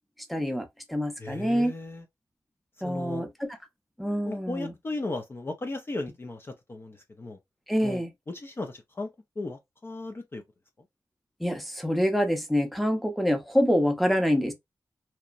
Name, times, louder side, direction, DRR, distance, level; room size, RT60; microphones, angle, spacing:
voice 1, 0.3-1.7 2.8-3.3 4.0-4.7 7.7-8.1 11.4-14.5, equal, ahead, 0.7 m, -26 dB
voice 2, 1.2-2.1 2.8-3.3 4.3-7.4 7.8-9.1 9.4-10.4, left 2 dB, 30° left, 0.5 m, -36 dB
2.9 x 2.1 x 2.4 m
wide cardioid pair, 90°, 7 cm